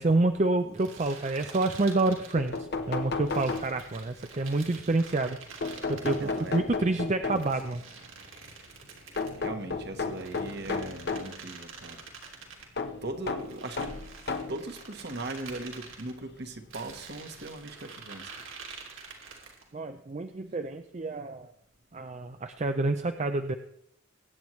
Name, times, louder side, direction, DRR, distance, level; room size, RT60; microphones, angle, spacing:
voice 1, 0.0-5.4 5.9-7.8 19.7-21.5 21.9-23.5, right 2 dB, 35° right, 7 dB, 0.5 m, -28 dB
sound 1, 0.7-2.6 3.3-6.6 7.3-9.4 10.0-12.7 13.4-16.1 16.7-19.7, right 5 dB, 75° right, 2.7 m, -47 dB
sound 2, 2.0-2.1 2.4-4.1 5.6-7.7 9.2-11.4 12.8-14.6 15.5-15.6 16.9-17.0 17.3-17.4, left 4 dB, 55° left, 0.9 m, -33 dB
voice 2, 6.2-6.6 9.4-12.0 13.0-13.9 14.5-18.3, right 2 dB, 55° right, 6 dB, 1.4 m, -39 dB
22.5 x 9.1 x 3.2 m, 0.72 s
head